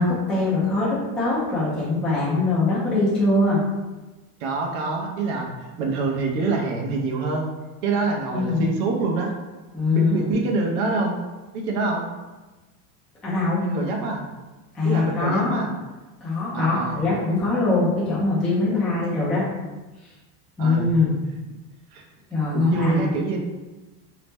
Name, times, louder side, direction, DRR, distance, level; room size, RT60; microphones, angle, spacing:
voice 1, 0.0-3.6 8.3-8.6 9.7-10.4 13.2-13.6 14.7-15.6 16.2-19.4 20.6-21.1 22.3-23.1, left 3 dB, ahead, -9 dB, 0.3 m, -22 dB
voice 2, 4.4-7.5 7.8-9.3 9.9-11.1 11.5-12.0 13.6-14.2 14.8-15.7 16.5-17.0 20.6-20.9 21.9-22.0 22.5-23.4, right 3 dB, 75° right, 1 dB, 0.8 m, -25 dB
2.9 x 2.0 x 3.3 m, 1.2 s
supercardioid pair, 140°, 45 cm